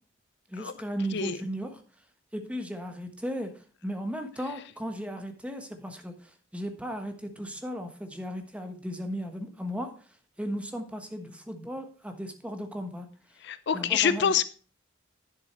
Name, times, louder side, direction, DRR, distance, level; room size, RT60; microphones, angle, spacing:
voice 1, 0.5-1.8 2.3-9.9 10.4-13.1 13.7-14.3, equal, 5° right, 6 dB, 1.3 m, -36 dB
voice 2, 13.4-14.4, left 7 dB, 60° left, 14 dB, 0.5 m, -26 dB
10.0 x 7.4 x 4.4 m, 0.39 s
head